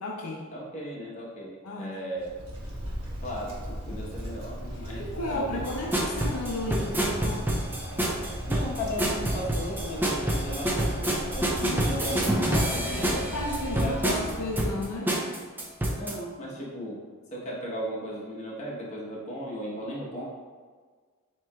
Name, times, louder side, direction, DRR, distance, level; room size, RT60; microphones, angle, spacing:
voice 1, 0.0-0.5 1.6-2.0 4.9-7.6 11.6-12.1 12.3-15.2, left 2 dB, 75° left, -1 dB, 0.6 m, -34 dB
voice 2, 0.5-2.3 3.2-5.6 8.5-12.3 12.7-13.2 13.6-14.4 16.0-17.0 17.3-20.2, equal, 30° left, -5 dB, 1.1 m, -36 dB
Wind, 2.2-15.0, equal, 75° right, 1.2 m, -37 dB
sound 1, 5.6-16.1, right 1 dB, 10° right, 0.4 m, -28 dB
7.6 x 2.9 x 2.3 m, 1.5 s
head